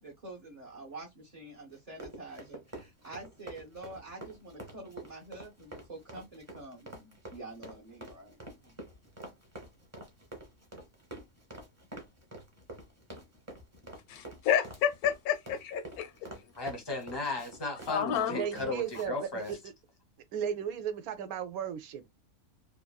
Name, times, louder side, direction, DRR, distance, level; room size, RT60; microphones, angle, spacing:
voice 1, 0.0-8.8, right 2 dB, 40° right, 0.6 m, -47 dB
Run, 1.7-19.1 19.4-19.6, right 1 dB, 15° right, 0.8 m, -47 dB
voice 2, 14.1-16.3 17.9-18.5, left 9 dB, 85° left, 1.1 m, -30 dB
voice 3, 16.6-19.6, left 2 dB, 25° left, 0.6 m, -36 dB
voice 4, 18.3-19.6 20.3-22.1, right 8 dB, 80° right, 1.0 m, -35 dB
2.8 x 2.5 x 2.3 m
omnidirectional pair, 1.6 m